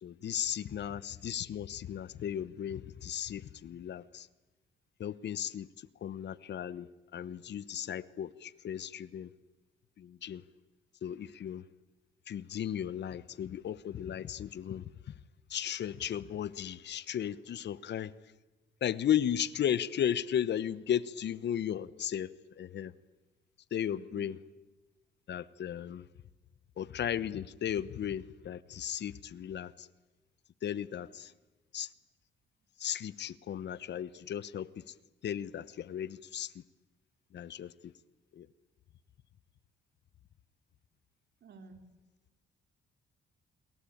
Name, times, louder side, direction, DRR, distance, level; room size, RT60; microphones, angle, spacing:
voice 1, 0.0-4.3 5.0-9.3 10.0-10.4 11.0-11.6 12.3-15.1 15.5-18.1 18.8-22.9 23.7-24.4 25.3-26.1 26.8-29.9 30.6-31.3 31.7-31.9 32.8-34.9 35.2-36.6 37.3-37.9 38.3-38.5, left 9 dB, 60° left, 1.0 m, -35 dB
voice 2, 23.9-24.3 41.4-41.8, right 4 dB, 60° right, 4.2 m, -54 dB
28.5 x 22.5 x 8.7 m
cardioid pair, 90°, 20 cm